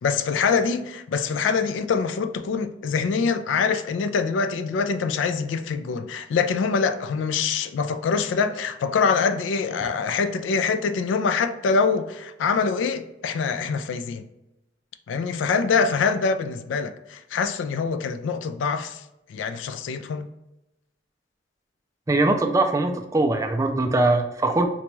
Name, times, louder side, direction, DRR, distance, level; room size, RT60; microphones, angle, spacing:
voice 1, 0.0-14.3 15.1-19.0 19.3-20.3, left 5 dB, 85° left, 0.3 m, -24 dB
voice 2, 22.1-24.7, right 2 dB, 15° right, 0.3 m, -21 dB
3.9 x 2.2 x 3.0 m
head